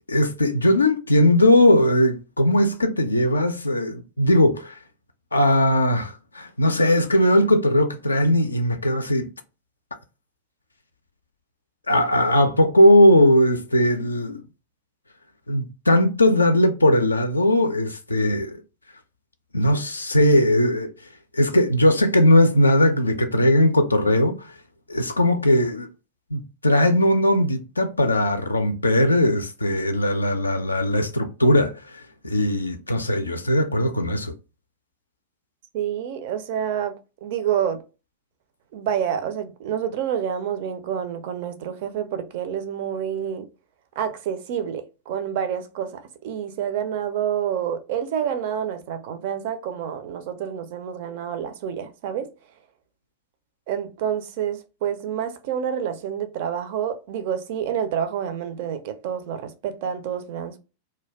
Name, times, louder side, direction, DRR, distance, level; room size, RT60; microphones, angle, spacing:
voice 1, 0.1-4.8 5.3-9.3 11.9-14.4 15.5-18.6 19.5-20.9 21.3-24.6 24.9-25.9 26.3-34.3, left 1 dB, 80° left, 0.3 m, -19 dB
voice 2, 35.7-37.0 37.2-37.8 38.7-43.5 44.0-52.3 53.7-60.6, right 9 dB, 50° right, 0.4 m, -28 dB
2.2 x 2.2 x 3.2 m
figure-of-eight pair, 90°, 0 cm